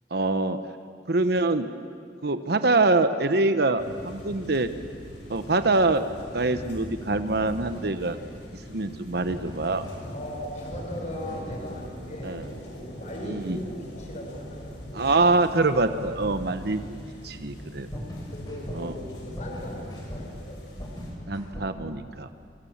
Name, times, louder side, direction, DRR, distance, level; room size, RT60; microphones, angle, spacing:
voice 1, 0.1-0.6 1.1-1.7 2.2-4.7 5.3-6.0 6.3-8.2 8.7-9.9 12.2-12.4 13.2-13.6 14.9-17.0 17.2-17.9 18.7-18.9 21.3-22.3, right 3 dB, 65° right, 10 dB, 1.0 m, -24 dB
sound 1, 3.8-21.1, equal, 80° left, 6.7 m, -42 dB
sound 2, 9.3-21.7, equal, 25° left, 6.6 m, -40 dB
voice 2, 10.1-15.2 18.3-20.6, equal, 45° left, 0 dB, 5.8 m, -39 dB
28.5 x 24.5 x 7.4 m, 2.3 s
head